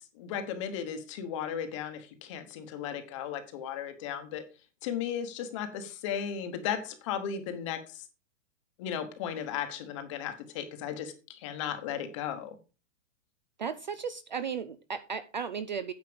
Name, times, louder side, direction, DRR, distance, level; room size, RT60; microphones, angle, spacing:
voice 1, 0.2-4.4 4.8-7.8 8.8-12.5, left 8 dB, 25° left, 8 dB, 1.1 m, -35 dB
voice 2, 13.6-15.9, right 6 dB, 40° right, 14 dB, 0.4 m, -35 dB
9.6 x 6.6 x 5.1 m, 0.33 s
hypercardioid pair, 175°, 38 cm